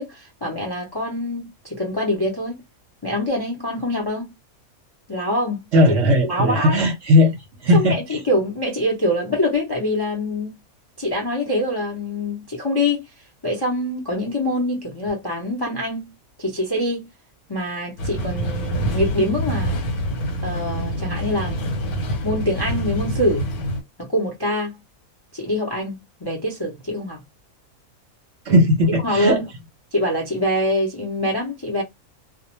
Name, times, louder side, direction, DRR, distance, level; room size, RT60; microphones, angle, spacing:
voice 1, 0.0-2.6 3.0-4.3 5.1-5.6 6.3-6.8 7.7-10.6 11.0-13.0 13.4-16.1 16.4-17.1 17.5-19.7 20.4-21.6 22.2-23.5 24.0-24.8 25.3-27.2 29.0-29.4 29.9-31.8, left 1 dB, 30° left, 0.4 m, -24 dB
voice 2, 5.7-7.3 7.6-8.0 28.5-29.4, left 1 dB, 55° right, 0.9 m, -17 dB
sound 1, 18.0-23.8, equal, 80° left, 1.2 m, -26 dB
2.4 x 2.1 x 2.9 m
omnidirectional pair, 1.6 m